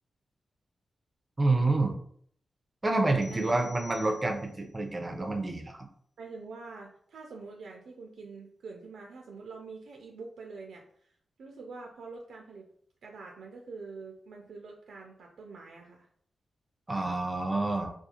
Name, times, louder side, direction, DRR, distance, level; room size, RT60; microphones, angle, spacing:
voice 1, 1.4-2.0 2.8-5.9 16.9-17.9, right 2 dB, 25° right, 3 dB, 0.4 m, -28 dB
voice 2, 3.0-3.5 6.2-11.1 11.4-12.7 13.0-16.1, right 4 dB, 85° right, 1 dB, 0.3 m, -45 dB
sound 1, 3.2-4.7, left 2 dB, 75° left, 0.5 m, -50 dB
2.4 x 2.3 x 2.8 m, 0.62 s
wide cardioid pair, 120°, 0 cm